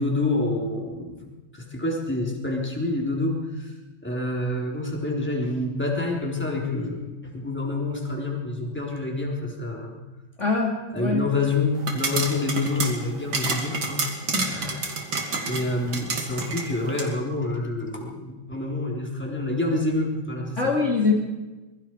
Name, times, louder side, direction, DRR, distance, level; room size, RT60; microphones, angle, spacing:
voice 1, 0.0-3.7 4.0-10.0 10.9-14.1 15.5-20.7, left 2 dB, 5° left, -1 dB, 3.9 m, -27 dB
voice 2, 10.4-11.2 14.3-14.9 15.3-15.5 20.6-21.1, left 4 dB, 35° left, -2 dB, 2.9 m, -24 dB
sound 1, 11.8-17.1, right 4 dB, 70° right, 3.3 m, -30 dB
25.5 x 22.0 x 4.9 m, 1.1 s
omnidirectional pair, 2.2 m